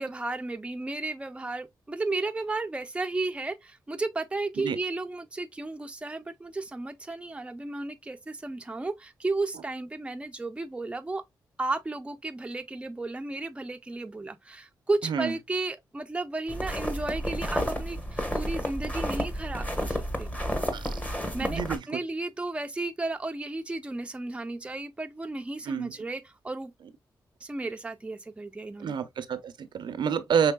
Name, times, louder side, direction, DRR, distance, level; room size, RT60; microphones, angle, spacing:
voice 1, 0.0-11.2 11.6-20.3 21.3-26.7 27.4-29.0, right 2 dB, 15° right, 0.5 m, -33 dB
sound 1, 16.5-21.8, equal, 20° left, 1.2 m, -31 dB
voice 2, 21.4-21.8 25.7-25.9 28.8-30.5, right 7 dB, 75° right, 0.6 m, -28 dB
5.4 x 3.3 x 2.2 m
cardioid pair, 75°, 8 cm